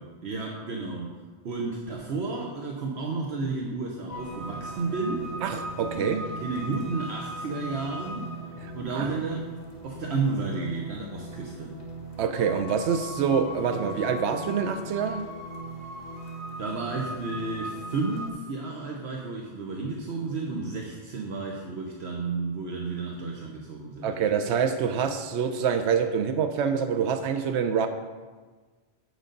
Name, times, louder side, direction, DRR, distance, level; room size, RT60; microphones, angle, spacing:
voice 1, 0.0-5.3 5.9-8.3 8.7-9.5 9.8-11.7 16.6-24.1, right 3 dB, 75° right, -1 dB, 1.2 m, -32 dB
sound 1, 4.1-18.3, right 1 dB, 60° left, 1.9 m, -38 dB
voice 2, 5.4-6.2 8.9-9.3 12.2-15.3 24.0-27.9, right 7 dB, 90° right, 8 dB, 0.9 m, -26 dB
7.9 x 6.3 x 5.2 m, 1.4 s
omnidirectional pair, 1.1 m